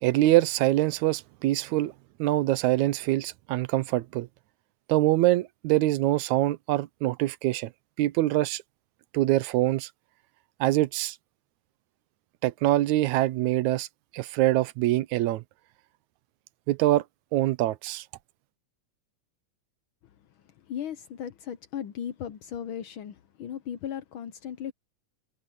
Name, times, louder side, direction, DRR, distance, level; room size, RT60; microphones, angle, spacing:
voice 1, 0.0-1.9 2.2-4.3 4.9-7.7 8.0-8.6 9.1-9.9 10.6-11.2 12.4-13.9 14.1-15.4 16.7-17.0 17.3-18.1, right 16 dB, 80° right, 2.0 m, -24 dB
voice 2, 20.0-24.7, left 9 dB, 90° left, 1.1 m, -37 dB
omnidirectional pair, 3.4 m